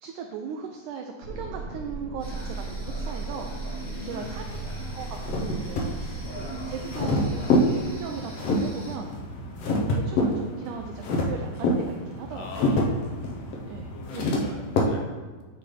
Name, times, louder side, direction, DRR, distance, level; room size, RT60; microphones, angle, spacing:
voice 1, 0.0-4.4 4.9-7.5 7.8-9.1 9.7-12.8 13.7-14.5, right 6 dB, 80° right, 3 dB, 1.9 m, -38 dB
sound 1, 1.2-8.0, right 3 dB, 60° right, 1.5 m, -37 dB
sound 2, 2.2-9.0, right 1 dB, 40° left, 1.0 m, -42 dB
voice 2, 3.7-4.5 5.8-6.0 9.1-9.5 12.3-13.5 13.9-15.1, left 4 dB, 85° left, 1 dB, 2.7 m, -43 dB
sound 3, 4.1-14.8, left 1 dB, 70° left, 1.6 m, -28 dB
10.5 x 3.9 x 3.3 m, 1.3 s
omnidirectional pair, 4.0 m